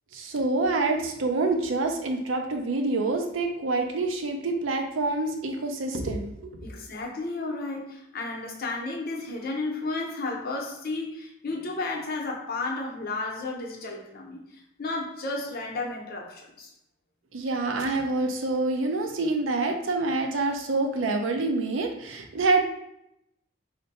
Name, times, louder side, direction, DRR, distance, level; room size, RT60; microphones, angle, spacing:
voice 1, 0.1-6.5 17.3-22.7, right 3 dB, 70° right, 4 dB, 0.5 m, -26 dB
voice 2, 6.6-14.4 14.8-16.7, left 3 dB, 50° left, 0 dB, 0.7 m, -33 dB
2.6 x 2.1 x 4.0 m, 0.81 s
head